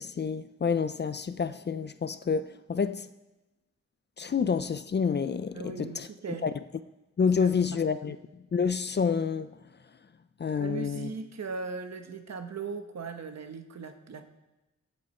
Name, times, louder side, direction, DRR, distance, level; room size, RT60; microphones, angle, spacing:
voice 1, 0.0-3.1 4.2-6.1 6.4-6.5 7.2-8.2 8.5-9.5 10.4-11.1, left 6 dB, 35° left, 0.4 m, -28 dB
voice 2, 5.5-6.5 7.4-7.5 8.1-8.2 10.6-14.2, right 5 dB, 60° right, 1.1 m, -38 dB
16.0 x 7.7 x 4.3 m
wide cardioid pair, 170°, 29 cm